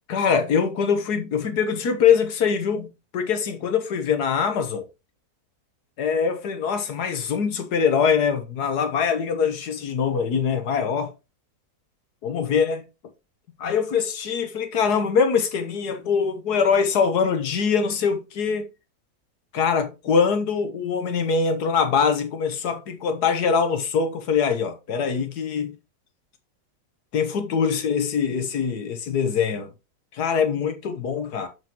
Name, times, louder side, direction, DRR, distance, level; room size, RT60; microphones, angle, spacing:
voice 1, 0.1-4.8 6.0-11.1 12.2-12.8 13.6-18.7 19.5-25.7 27.1-29.7 30.1-31.5, left 6 dB, 75° left, 1.7 m, -23 dB
6.8 x 6.4 x 3.0 m
omnidirectional pair, 1.7 m